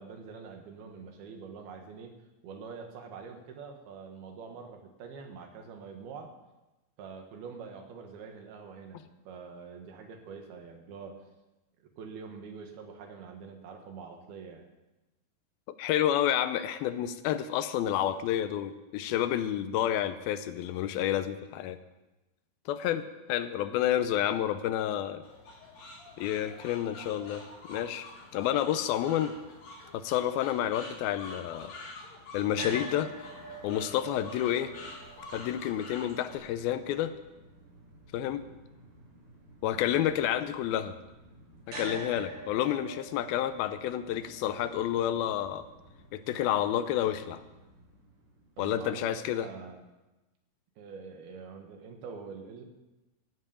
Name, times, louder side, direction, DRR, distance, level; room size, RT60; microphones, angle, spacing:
voice 1, 0.0-2.1 2.4-6.3 7.0-11.2 11.8-14.6 39.7-40.0 48.6-49.8 50.8-52.6, right 5 dB, 80° right, 4 dB, 3.5 m, -45 dB
voice 2, 15.8-21.8 22.7-25.2 26.2-28.1 28.3-29.3 29.9-31.7 32.3-33.1 33.6-34.7 35.3-37.1 38.1-38.4 39.6-40.9 41.7-45.6 46.1-47.4 48.6-49.5, left 11 dB, 85° left, 11 dB, 2.5 m, -29 dB
sound 1, 25.2-36.4, left 2 dB, 55° left, 3.0 m, -47 dB
sound 2, 32.5-48.7, right 1 dB, 50° right, 4.7 m, -47 dB
14.0 x 7.8 x 8.8 m, 1.1 s
omnidirectional pair, 4.3 m